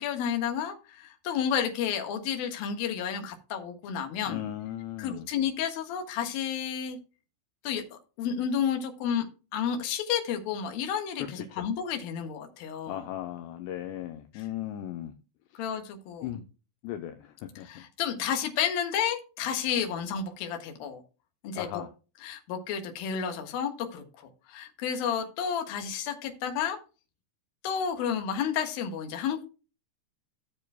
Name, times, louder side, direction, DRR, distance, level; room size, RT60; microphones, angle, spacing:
voice 1, 0.0-4.4 5.0-7.0 7.6-9.2 9.5-13.1 14.3-14.4 15.6-16.3 17.6-21.0 21.4-21.8 22.2-26.8 27.6-29.5, left 8 dB, 65° left, 2.8 m, -31 dB
voice 2, 4.3-5.3 11.3-11.7 12.9-15.1 16.2-16.4 16.8-17.8 21.6-21.9, left 12 dB, 80° left, 2.8 m, -37 dB
15.5 x 7.2 x 2.3 m
omnidirectional pair, 5.4 m